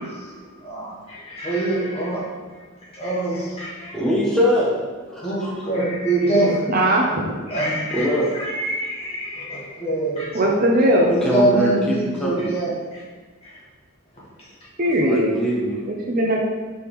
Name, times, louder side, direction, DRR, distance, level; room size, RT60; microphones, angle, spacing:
voice 1, 0.0-2.6 2.9-4.0 5.2-6.7 7.5-10.6 11.1-13.0 13.4-13.6 14.4-14.5 16.2-16.3, right 1 dB, 30° left, -7 dB, 1.2 m, -25 dB
voice 2, 3.9-4.7 5.1-5.6 7.9-8.3 11.1-12.5 15.0-15.8, equal, ahead, -6 dB, 0.8 m, -22 dB
voice 3, 6.7-7.4 10.3-11.1 14.8-15.3 15.9-16.4, right 1 dB, 45° right, -1 dB, 0.5 m, -19 dB
4.6 x 3.4 x 3.0 m, 1.3 s
head